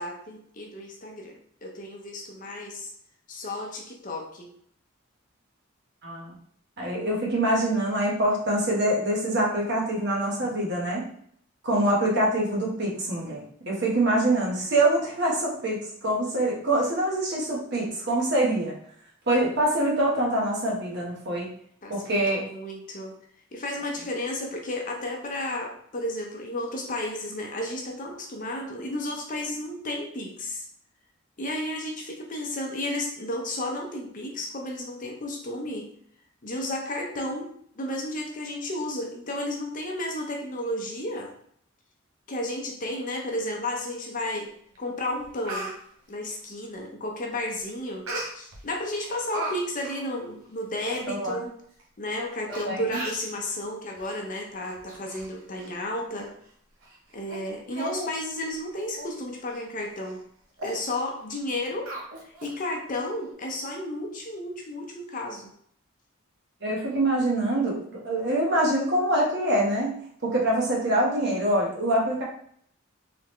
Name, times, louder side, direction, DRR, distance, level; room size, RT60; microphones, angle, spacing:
voice 1, 0.0-2.9 3.3-4.5 21.8-23.2 23.5-30.6 31.4-35.9 36.4-41.3 42.3-44.5 44.8-45.7 46.1-48.1 48.3-51.6 52.0-56.3 57.1-60.2 60.6-61.9 62.4-65.5, left 1 dB, 40° left, 1 dB, 0.7 m, -33 dB
voice 2, 6.0-6.3 6.8-11.1 11.6-18.7 19.3-21.5 21.9-22.4 51.1-51.4 52.5-53.0 66.6-70.0 70.2-72.2, right 1 dB, 55° right, -3 dB, 1.3 m, -25 dB
Speech, 44.7-44.8 45.2-45.8 48.1-48.6 49.0-49.5 49.8-50.0 50.6-50.7 50.9-51.0 51.8-51.9 52.5-52.6 52.9-53.3 54.0-54.2 54.6-55.3 55.6-55.7 56.2-56.3 56.8-57.0 57.3-57.4 57.7-58.1 58.4-58.6 59.0-59.2 59.5-59.6 60.0-60.2 60.6-60.8 61.9-62.5 62.9-63.0, right 1 dB, 90° right, 0.9 m, -36 dB
3.7 x 3.4 x 3.1 m, 0.63 s
head